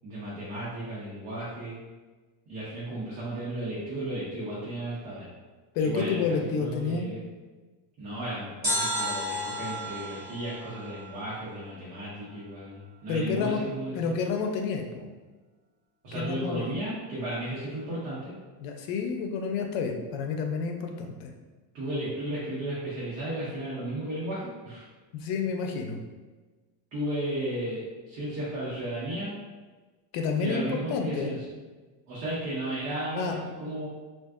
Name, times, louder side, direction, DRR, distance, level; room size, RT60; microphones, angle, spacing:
voice 1, 0.0-1.8 2.5-5.3 5.8-7.2 8.0-14.0 16.0-18.3 21.7-24.8 26.9-29.3 30.4-31.6 32.1-33.9, right 1 dB, 75° right, -9 dB, 1.1 m, -34 dB
voice 2, 5.7-7.1 13.1-13.6 13.9-15.1 16.1-16.7 18.6-21.3 25.1-26.0 30.1-30.6 30.9-31.3 33.1-33.4, left 5 dB, 55° left, 3 dB, 0.5 m, -29 dB
sound 1, 8.6-11.7 12.0-12.1, equal, 20° right, 1.1 m, -33 dB
3.5 x 2.5 x 2.4 m, 1.3 s
cardioid pair, 170°, 48 cm